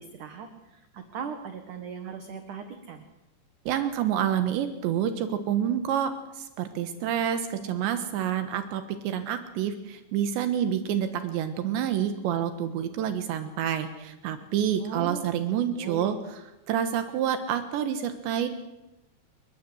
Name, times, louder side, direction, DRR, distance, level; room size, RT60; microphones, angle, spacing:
voice 1, 0.0-3.0 7.6-7.8 14.8-15.2 15.8-16.2, right 6 dB, 55° right, 7 dB, 2.7 m, -39 dB
voice 2, 3.7-18.5, right 9 dB, 80° right, 8 dB, 3.6 m, -28 dB
30.0 x 20.5 x 8.0 m, 0.96 s
omnidirectional pair, 5.1 m